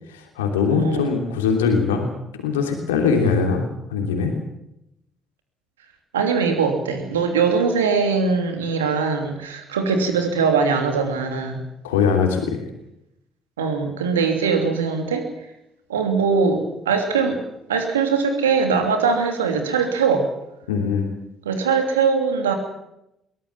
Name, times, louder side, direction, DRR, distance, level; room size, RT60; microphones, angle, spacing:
voice 1, 0.1-2.1 2.4-3.6 3.9-4.3 11.8-12.6 20.7-21.1, left 5 dB, 85° left, 3 dB, 3.0 m, -21 dB
voice 2, 0.6-1.1 6.1-11.6 13.6-15.3 15.9-17.4 17.7-20.3 21.4-22.5, right 5 dB, 85° right, 5 dB, 3.0 m, -21 dB
22.5 x 18.5 x 7.4 m, 0.83 s
hypercardioid pair, 45°, 0 cm